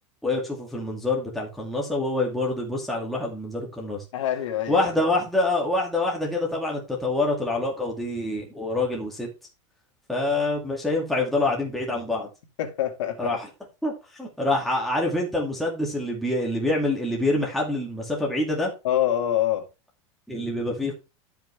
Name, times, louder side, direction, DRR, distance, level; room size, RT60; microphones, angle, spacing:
voice 1, 0.2-4.0 4.7-9.3 10.1-12.3 13.2-13.4 13.8-18.7 20.3-20.9, left 2 dB, ahead, 2.3 m, -26 dB
voice 2, 4.1-5.1 12.6-13.4 18.8-19.7, left 11 dB, 85° left, 2.0 m, -25 dB
12.5 x 5.8 x 3.4 m
supercardioid pair, 145°, 16 cm